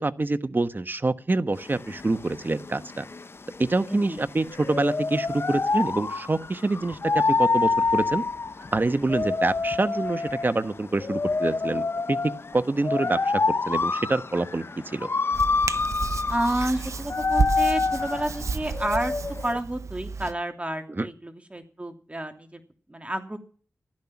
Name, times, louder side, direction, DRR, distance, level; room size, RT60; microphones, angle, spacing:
voice 1, 0.0-3.0 3.6-8.2 8.7-11.8 12.1-15.1 20.9-21.1, right 2 dB, 40° right, 1.2 m, -26 dB
sound 1, 1.6-19.6, left 4 dB, 50° left, 0.6 m, -27 dB
voice 2, 3.9-4.2 16.3-19.1 19.4-22.6 22.9-23.4, right 1 dB, 25° right, 2.8 m, -30 dB
Hands, 15.3-20.3, right 4 dB, 75° right, 0.8 m, -31 dB
15.0 x 12.0 x 5.9 m
cardioid pair, 45°, 5 cm